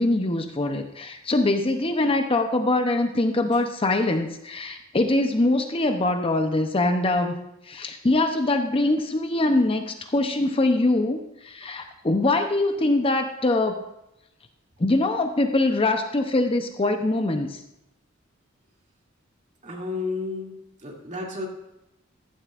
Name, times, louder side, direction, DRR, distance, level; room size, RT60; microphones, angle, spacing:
voice 1, 0.0-7.4 7.7-13.8 14.8-17.6, left 2 dB, 25° left, 6 dB, 0.7 m, -23 dB
voice 2, 19.6-20.6 20.8-21.5, left 3 dB, 35° right, -1 dB, 2.5 m, -31 dB
15.0 x 11.5 x 2.5 m, 0.88 s
head